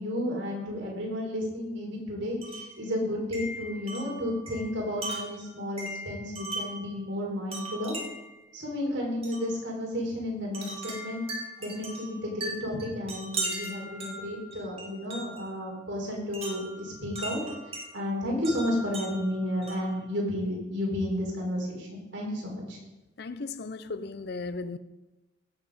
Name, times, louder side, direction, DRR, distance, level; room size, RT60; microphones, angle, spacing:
voice 1, 0.0-7.9 8.5-11.3 11.6-17.4 17.9-22.8, left 1 dB, 60° right, -2 dB, 4.4 m, -32 dB
Wind chime, 2.4-2.8 3.3-6.9 7.5-8.3 9.2-9.5 10.5-15.5 16.3-17.9 18.4-20.0, right 2 dB, 30° right, 2.3 m, -38 dB
voice 2, 23.2-24.8, left 3 dB, 50° left, 13 dB, 0.5 m, -36 dB
16.5 x 7.4 x 5.1 m, 1.1 s
head